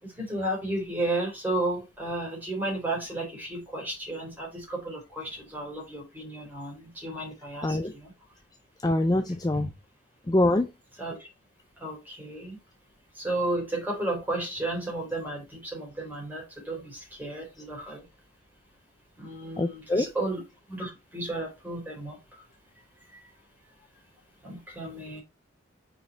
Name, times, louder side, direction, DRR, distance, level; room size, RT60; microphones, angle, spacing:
voice 1, 0.0-8.1 9.5-9.7 11.0-11.3 11.8-12.6 13.1-18.1 19.2-22.4 23.1-23.3 24.4-25.2, right 2 dB, 10° right, 3.4 m, -33 dB
voice 2, 7.6-7.9 8.8-9.7 10.3-10.7 19.6-20.1, left 1 dB, 20° left, 0.5 m, -24 dB
5.3 x 4.7 x 4.4 m
head